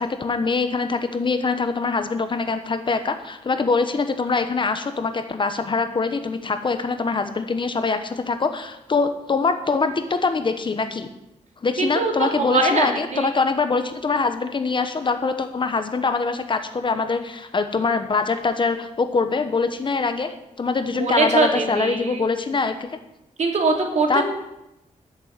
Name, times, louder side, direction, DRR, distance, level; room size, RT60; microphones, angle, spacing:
voice 1, 0.0-11.1 11.6-22.9 24.1-24.2, left 4 dB, 40° left, 8 dB, 1.1 m, -23 dB
voice 2, 11.8-13.3 20.9-22.2 23.4-24.2, right 3 dB, 65° right, 3 dB, 2.9 m, -22 dB
13.5 x 7.2 x 9.5 m, 0.90 s
wide cardioid pair, 135°, 13 cm